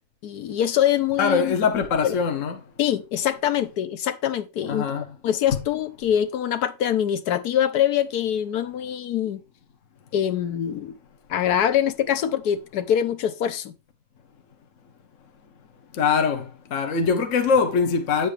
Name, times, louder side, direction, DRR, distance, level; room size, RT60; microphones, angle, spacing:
voice 1, 0.2-1.5 2.0-2.1 2.8-4.9 5.2-9.4 10.1-11.0 11.3-13.7, left 10 dB, 80° left, 1.3 m, -24 dB
voice 2, 1.2-2.6 4.6-5.1 5.5-5.6 15.9-18.3, left 5 dB, 55° left, 1.3 m, -22 dB
8.5 x 7.5 x 3.3 m
omnidirectional pair, 1.6 m